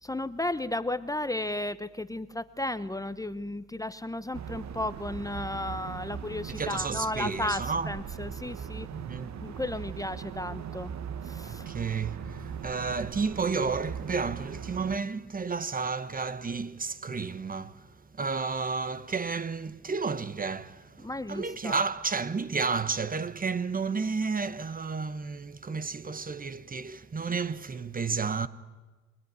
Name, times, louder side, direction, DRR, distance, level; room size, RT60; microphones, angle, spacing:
voice 1, 0.0-8.9 9.4-10.9 11.2-11.7 21.0-21.8, left 1 dB, 10° left, 0.9 m, -34 dB
sound 1, 4.3-15.0, right 8 dB, 65° right, 1.4 m, -39 dB
voice 2, 6.5-7.9 8.9-9.4 11.4-28.5, right 5 dB, 30° right, 1.0 m, -32 dB
26.5 x 21.0 x 9.5 m
cardioid pair, 90°, 30 cm